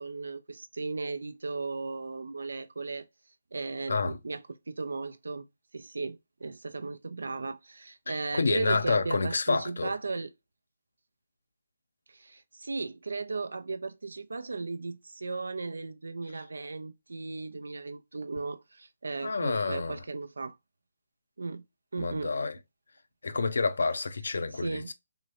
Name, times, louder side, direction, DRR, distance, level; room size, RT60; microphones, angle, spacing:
voice 1, 0.0-3.0 3.5-5.4 5.7-10.3 12.1-20.6 21.4-21.6 21.9-22.4 24.5-24.9, right 3 dB, 75° right, 0.4 m, -36 dB
voice 2, 8.1-9.9 19.2-20.0 22.0-22.6 23.2-24.9, left 4 dB, 75° left, 0.5 m, -29 dB
3.7 x 2.1 x 2.7 m
figure-of-eight pair, 150°, 0 cm